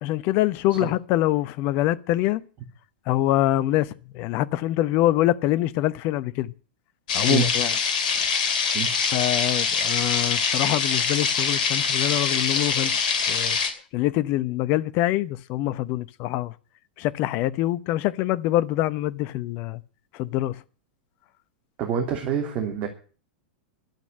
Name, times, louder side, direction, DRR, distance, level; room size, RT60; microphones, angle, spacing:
voice 1, 0.0-2.4 3.1-6.5 7.1-7.7 9.1-13.6 13.9-16.5 17.0-19.8 20.1-20.5, left 15 dB, 45° left, 0.8 m, -25 dB
sound 1, 7.1-13.7, left 6 dB, 60° left, 2.7 m, -24 dB
voice 2, 21.8-22.9, right 7 dB, 35° right, 2.9 m, -26 dB
12.0 x 8.5 x 8.9 m
figure-of-eight pair, 95°, 5 cm